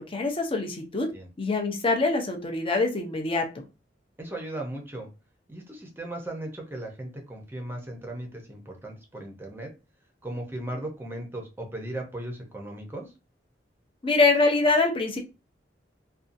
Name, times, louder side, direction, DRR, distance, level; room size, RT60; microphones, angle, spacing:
voice 1, 0.0-1.1 1.4-3.6 14.0-15.2, left 3 dB, 30° left, 3 dB, 0.6 m, -24 dB
voice 2, 4.2-5.1 5.5-9.7 10.2-13.1, right 1 dB, 10° right, 1 dB, 0.7 m, -37 dB
2.6 x 2.3 x 2.5 m, 0.29 s
head